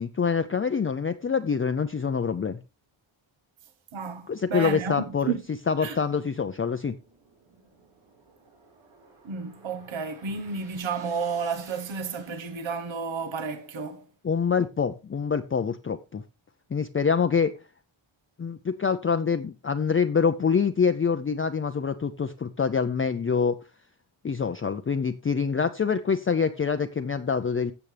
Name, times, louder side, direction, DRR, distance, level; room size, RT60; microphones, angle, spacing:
voice 1, 0.0-2.6 4.3-5.3 5.7-7.0 14.2-16.2 16.7-17.5 18.4-23.6 24.2-27.7, left 6 dB, 25° left, 0.5 m, -25 dB
voice 2, 3.9-5.4 5.8-6.0 9.2-14.0, right 5 dB, 70° right, 1.3 m, -31 dB
sound 1, 6.4-13.7, right 4 dB, 90° right, 4.6 m, -56 dB
14.0 x 7.4 x 3.3 m
wide cardioid pair, 105°, 48 cm